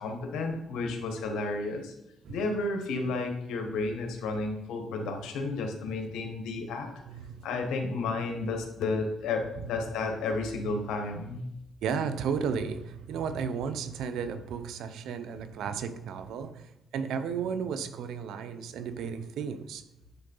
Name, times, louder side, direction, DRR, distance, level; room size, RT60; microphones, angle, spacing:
voice 1, 0.0-1.9 2.3-6.9 7.4-11.4, left 3 dB, 85° left, 4 dB, 1.4 m, -32 dB
voice 2, 7.1-7.5 11.8-19.8, right 6 dB, 80° right, 10 dB, 0.7 m, -34 dB
9.6 x 3.8 x 5.5 m, 0.87 s
cardioid pair, 90°, 0 cm